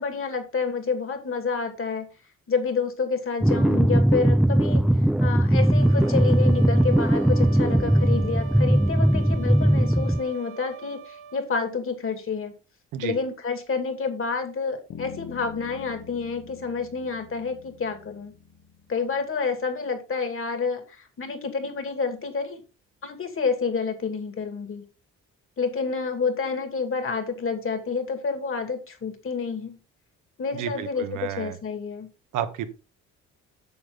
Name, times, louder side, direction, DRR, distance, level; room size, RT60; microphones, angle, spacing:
voice 1, 0.0-2.1 2.5-4.9 5.2-12.5 13.0-18.3 18.9-22.6 23.0-24.8 25.6-29.8 30.4-32.1, left 5 dB, 45° left, 7 dB, 2.4 m, -29 dB
sound 1, 3.4-10.2, right 1 dB, ahead, 0.5 m, -19 dB
sound 2, 5.5-11.5, right 6 dB, 45° right, 0.9 m, -42 dB
Bass guitar, 14.9-19.3, left 7 dB, 75° left, 1.6 m, -45 dB
voice 2, 30.5-31.6 32.3-32.7, right 10 dB, 85° right, 9 dB, 1.3 m, -31 dB
8.7 x 6.6 x 3.9 m, 0.32 s
cardioid pair, 90°, 30 cm